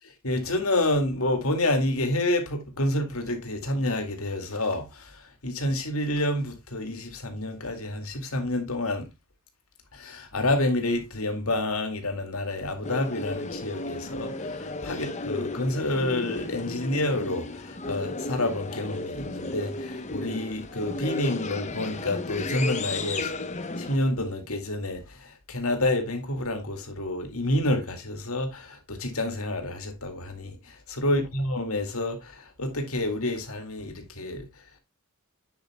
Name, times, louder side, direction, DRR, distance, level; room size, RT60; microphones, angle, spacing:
voice 1, 0.2-9.1 9.9-23.3 23.8-34.8, left 1 dB, 80° left, 2.2 m, -29 dB
sound 1, 12.8-24.0, left 2 dB, 35° left, 0.8 m, -34 dB
9.5 x 7.7 x 2.2 m
head